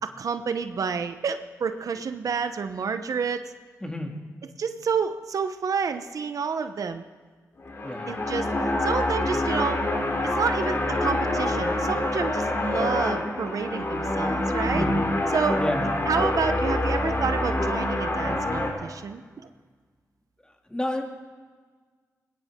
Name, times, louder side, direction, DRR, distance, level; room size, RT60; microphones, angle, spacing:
voice 1, 0.0-3.5 4.6-7.0 8.1-8.5 8.8-9.8 10.2-14.8 15.3-15.6 16.0-19.2, right 6 dB, 70° right, 9 dB, 0.9 m, -29 dB
voice 2, 3.8-4.1 7.8-8.1 14.7-14.9 15.6-15.9 20.7-21.0, left 1 dB, 15° left, 2 dB, 2.5 m, -30 dB
sound 1, 7.6-18.7, left 1 dB, 45° left, 3.4 m, -26 dB
20.0 x 18.0 x 3.7 m, 1.5 s
cardioid pair, 60°, 6 cm